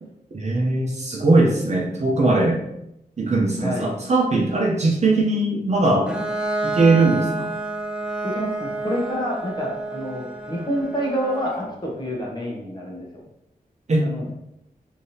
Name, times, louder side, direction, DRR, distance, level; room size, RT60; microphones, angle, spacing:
voice 1, 0.3-2.6 3.2-6.3 6.6-7.5 13.9-14.3, right 2 dB, 45° right, -1 dB, 0.6 m, -20 dB
voice 2, 3.6-3.9 8.2-13.2 14.0-14.3, equal, 30° left, -2 dB, 0.9 m, -28 dB
Bowed string instrument, 6.1-11.7, right 2 dB, 5° right, 0.5 m, -29 dB
3.3 x 2.8 x 2.8 m, 0.80 s
wide cardioid pair, 115°, 15 cm